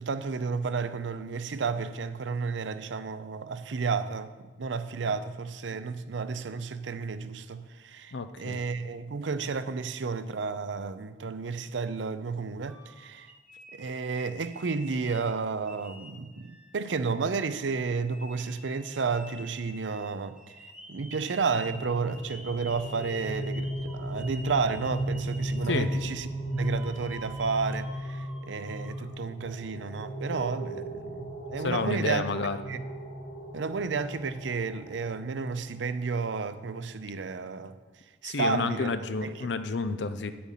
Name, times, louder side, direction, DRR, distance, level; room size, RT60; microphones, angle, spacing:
voice 1, 0.0-13.3 13.7-20.4 20.9-26.3 26.5-32.2 32.7-32.8 33.5-37.8 38.2-38.9 39.2-39.5, right 4 dB, 90° right, 0.5 m, -32 dB
voice 2, 8.1-8.6 25.7-25.9 31.6-32.6 38.3-40.3, left 4 dB, 70° left, 0.6 m, -30 dB
sound 1, 12.7-15.3 15.7-29.1, right 1 dB, 5° right, 1.3 m, -49 dB
sound 2, 21.3-35.9, right 1 dB, 55° left, 1.9 m, -36 dB
8.5 x 8.4 x 5.7 m
head